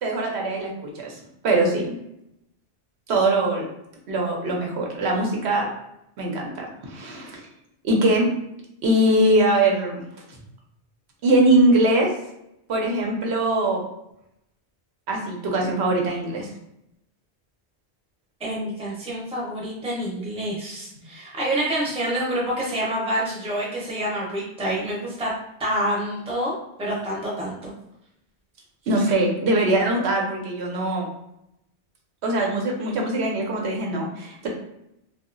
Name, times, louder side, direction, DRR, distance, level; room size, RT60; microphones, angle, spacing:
voice 1, 0.0-1.1 1.4-1.9 3.1-3.6 4.1-5.7 6.2-7.4 7.8-8.3 8.8-10.0 11.2-12.1 12.7-13.8 15.1-16.5 28.9-31.1 32.2-34.5, right 1 dB, 75° right, 0 dB, 0.9 m, -22 dB
voice 2, 18.4-25.3 25.6-26.5 26.8-27.7, right 1 dB, 5° right, -5 dB, 0.6 m, -27 dB
2.7 x 2.3 x 2.5 m, 0.82 s
omnidirectional pair, 1.1 m